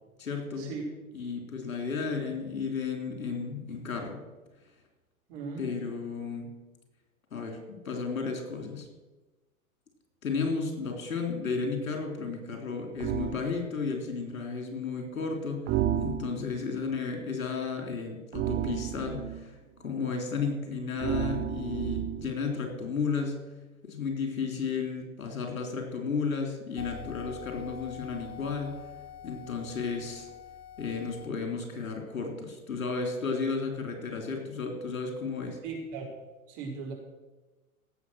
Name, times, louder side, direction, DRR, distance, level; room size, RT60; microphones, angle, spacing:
voice 1, 0.2-0.7 1.1-4.2 5.6-6.5 7.3-8.9 10.2-23.4 23.8-28.8 29.2-30.3 30.8-35.6, left 5 dB, 70° left, 3 dB, 3.6 m, -33 dB
voice 2, 5.3-5.7 35.6-36.1 36.5-36.9, right 4 dB, 45° right, 0 dB, 4.2 m, -37 dB
sound 1, 13.0-13.4 15.7-16.6 18.3-19.4 21.0-22.4, right 11 dB, 25° right, 0.7 m, -31 dB
sound 2, 26.8-31.3, left 9 dB, 30° left, 0.9 m, -45 dB
17.0 x 7.8 x 6.1 m, 1.2 s
figure-of-eight pair, 95°, 42 cm